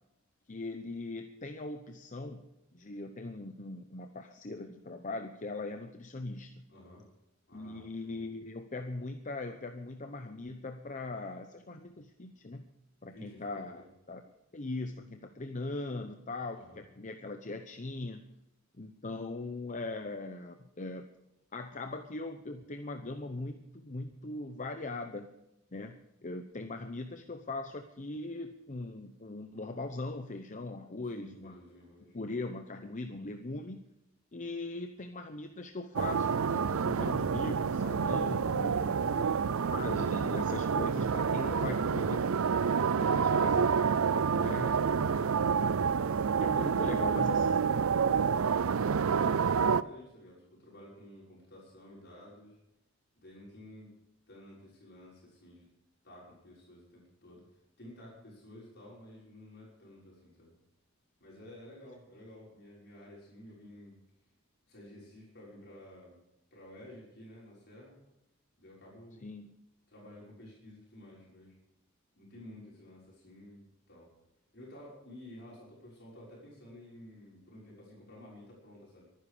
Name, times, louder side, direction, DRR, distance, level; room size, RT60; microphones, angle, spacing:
voice 1, 0.5-6.6 7.5-12.7 13.0-14.2 14.5-18.3 18.8-21.1 21.5-25.3 25.7-31.6 32.1-33.8 34.3-39.3 39.6-42.3 43.0-43.8 44.3-44.9 46.4-47.6 69.2-69.6, left 2 dB, 40° left, 6 dB, 0.8 m, -40 dB
voice 2, 6.7-7.0 7.5-8.2 13.1-13.9 16.5-16.8 31.1-32.2 38.7-40.1 41.1-41.6 41.9-42.1 42.4-43.0 44.5-45.5 46.5-47.1 48.6-52.6 53.2-53.9 54.3-55.7 56.0-57.4 57.8-60.5 61.2-64.0 64.7-66.2 66.5-68.0 68.6-69.3 69.9-71.5 72.1-74.1 74.5-79.1, left 1 dB, 55° left, -5 dB, 6.2 m, -52 dB
sound 1, 36.0-49.8, right 6 dB, 85° right, 0.5 m, -28 dB
24.0 x 10.0 x 5.1 m, 0.87 s
head